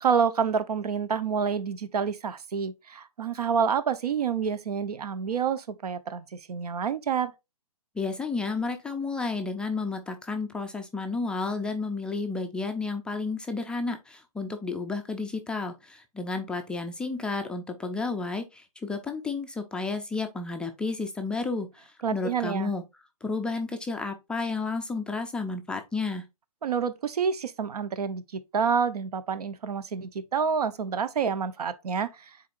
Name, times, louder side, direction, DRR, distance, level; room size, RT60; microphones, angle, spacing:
voice 1, 0.0-7.3 22.0-22.7 26.6-32.1, right 6 dB, 75° right, 0.9 m, -28 dB
voice 2, 8.0-22.8 23.2-26.2, left 3 dB, 5° left, 0.3 m, -32 dB
9.2 x 4.2 x 2.5 m
hypercardioid pair, 140°, 20 cm